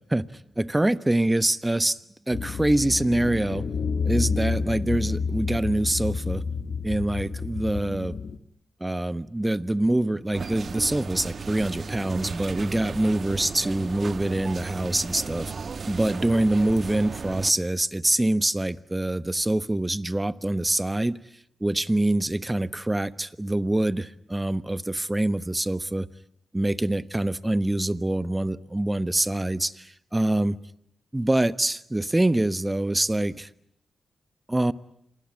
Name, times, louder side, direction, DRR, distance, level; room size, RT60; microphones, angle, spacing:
voice 1, 0.6-2.0 2.3-3.7 4.0-6.4 6.8-8.2 8.8-15.5 15.9-21.2 21.6-26.1 26.5-30.6 31.1-33.5 34.5-34.7, right 1 dB, 15° right, 1.2 m, -25 dB
sound 1, 2.3-8.4, left 5 dB, 70° left, 1.6 m, -29 dB
sound 2, 10.3-17.5, right 5 dB, 60° right, 1.3 m, -35 dB
27.5 x 20.5 x 9.8 m
cardioid pair, 55°, 0 cm